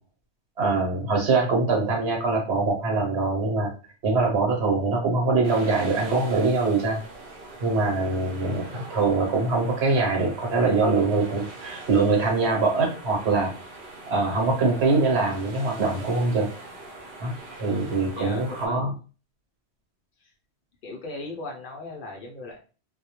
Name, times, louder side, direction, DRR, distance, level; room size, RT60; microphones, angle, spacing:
voice 1, 0.6-3.7 4.0-7.0 7.6-13.5 14.1-16.5 17.2-17.3 17.6-18.9, right 3 dB, 75° right, 0 dB, 1.1 m, -23 dB
sound 1, 5.4-18.7, right 2 dB, 55° right, 0.8 m, -42 dB
voice 2, 18.2-18.8 20.2-20.3 20.8-22.6, left 2 dB, 60° left, 0 dB, 0.6 m, -37 dB
2.2 x 2.1 x 2.8 m, 0.36 s
omnidirectional pair, 1.1 m